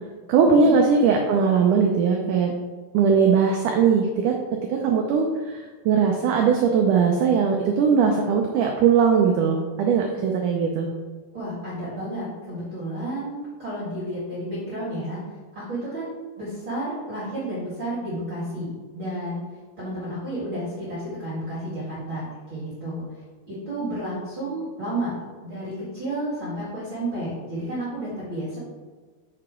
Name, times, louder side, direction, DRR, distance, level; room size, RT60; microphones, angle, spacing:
voice 1, 0.3-2.5 2.9-4.4 4.8-5.6 5.9-10.9, right 6 dB, 85° right, 2 dB, 1.8 m, -20 dB
voice 2, 11.3-15.2 15.5-19.4 19.8-23.0 23.5-25.1 25.4-28.6, right 1 dB, 40° right, -10 dB, 2.3 m, -31 dB
6.8 x 6.6 x 3.7 m, 1.4 s
omnidirectional pair, 4.4 m